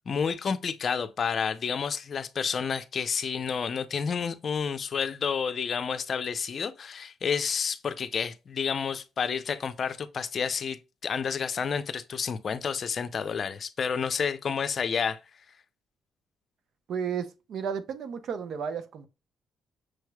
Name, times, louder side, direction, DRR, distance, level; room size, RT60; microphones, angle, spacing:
voice 1, 0.1-15.2, left 6 dB, 50° left, 0.5 m, -30 dB
voice 2, 16.9-19.1, right 7 dB, 65° right, 0.7 m, -33 dB
6.3 x 3.1 x 2.2 m
cardioid pair, 90°, 0 cm